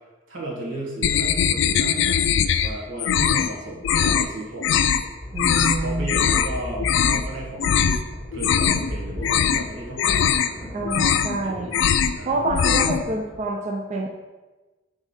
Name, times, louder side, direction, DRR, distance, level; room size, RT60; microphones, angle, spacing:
voice 1, 0.3-4.8 5.8-8.0 8.3-10.3 11.4-11.6 12.1-12.4, right 1 dB, 90° right, -3 dB, 1.7 m, -35 dB
sound 1, 1.0-2.7 3.0-3.5 3.8-4.3 4.6-5.0 5.4-5.8 6.1-6.5 6.8-7.2 7.6-8.0 8.3-8.9 9.2-9.6 10.0-10.5 10.8-11.4 11.7-12.2 12.5-13.0, left 8 dB, 70° left, 0.3 m, -21 dB
sound 2, 4.7-13.5, left 1 dB, 20° right, 1.6 m, -36 dB
voice 2, 5.3-6.1 10.7-11.7 12.3-14.1, right 2 dB, 35° right, 1 dB, 0.5 m, -27 dB
5.3 x 3.6 x 5.5 m, 1.2 s
head